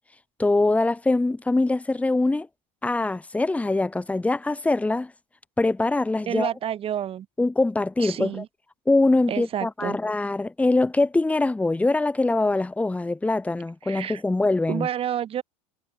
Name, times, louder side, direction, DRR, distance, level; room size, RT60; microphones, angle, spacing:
voice 1, 0.4-2.5 2.8-5.1 5.6-6.5 7.4-8.4 8.9-14.9, left 2 dB, 10° left, 2.9 m, -23 dB
voice 2, 6.3-7.3 8.0-8.5 9.3-10.0 13.8-14.2 14.7-15.4, right 10 dB, 35° right, 4.3 m, -29 dB
supercardioid pair, 115°, 17 cm